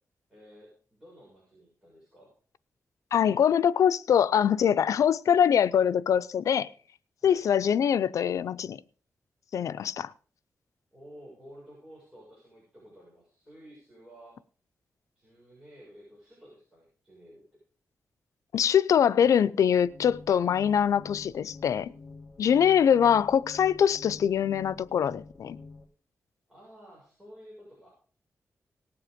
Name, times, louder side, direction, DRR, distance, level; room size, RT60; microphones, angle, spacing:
voice 1, 0.3-2.3 7.2-7.5 10.9-14.4 15.2-17.4 26.5-27.9, equal, 15° right, 6.9 m, -52 dB
voice 2, 3.1-6.7 7.2-8.8 9.5-10.1 18.5-21.9 22.4-25.6, left 8 dB, 85° left, 0.5 m, -23 dB
sound 1, 19.8-25.8, left 3 dB, 20° left, 2.4 m, -48 dB
18.5 x 7.9 x 5.1 m
wide cardioid pair, 140°, 5 cm